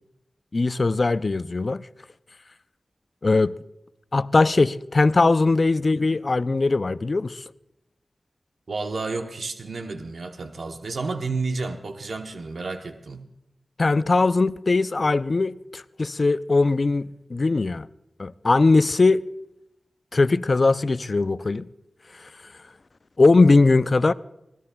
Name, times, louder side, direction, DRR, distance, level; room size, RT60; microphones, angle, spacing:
voice 1, 0.5-1.9 3.2-3.5 4.1-7.4 13.8-17.9 18.2-19.2 20.1-21.7 22.1-22.3 23.2-24.1, left 3 dB, 55° left, 0.4 m, -20 dB
voice 2, 8.7-13.2, right 3 dB, 80° right, 0.9 m, -31 dB
24.5 x 17.5 x 2.3 m
wide cardioid pair, 55°, 0 cm